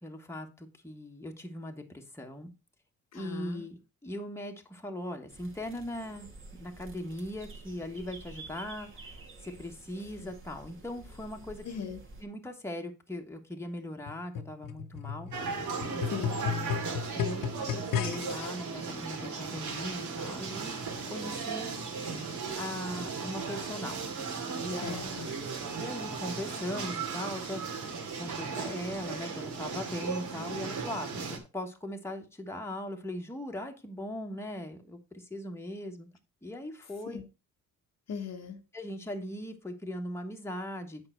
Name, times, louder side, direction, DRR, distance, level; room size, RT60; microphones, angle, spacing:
voice 1, 0.0-2.5 3.1-6.3 6.6-11.9 12.2-15.3 15.9-16.3 17.1-20.7 21.1-21.8 22.6-24.0 24.6-25.1 25.7-27.7 28.2-36.1 36.4-37.2 38.7-41.0, left 1 dB, 10° left, 1.4 m, -39 dB
voice 2, 3.1-3.6 10.2-10.3 11.6-12.0 16.1-16.8 24.8-25.3 37.1-37.3 38.1-38.6, left 6 dB, 50° left, 1.0 m, -39 dB
sound 1, 5.3-12.2, right 3 dB, 40° right, 2.1 m, -50 dB
sound 2, 14.1-18.5 19.2-19.3, left 7 dB, 75° left, 1.0 m, -34 dB
sound 3, 15.3-31.4, right 5 dB, 60° right, 2.2 m, -36 dB
8.8 x 5.6 x 4.5 m
cardioid pair, 130°, 33 cm